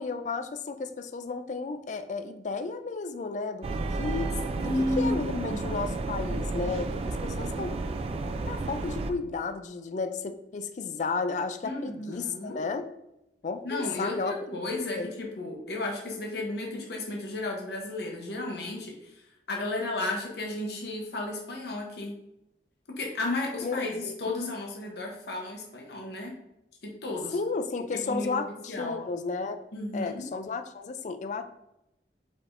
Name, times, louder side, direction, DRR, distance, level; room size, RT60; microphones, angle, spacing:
voice 1, 0.0-4.3 5.0-7.7 8.5-12.9 13.4-14.3 14.9-15.1 23.6-24.1 27.3-29.6 29.9-31.4, left 4 dB, 45° left, 10 dB, 0.4 m, -33 dB
sound 1, 3.6-9.1, right 3 dB, 35° right, 0.3 m, -32 dB
voice 2, 4.6-5.9 11.6-12.6 13.6-22.1 22.9-26.4 26.8-27.4 27.9-28.3 28.7-29.1 29.7-30.3, left 2 dB, 65° left, 0 dB, 0.9 m, -33 dB
4.8 x 4.3 x 2.5 m, 0.86 s
head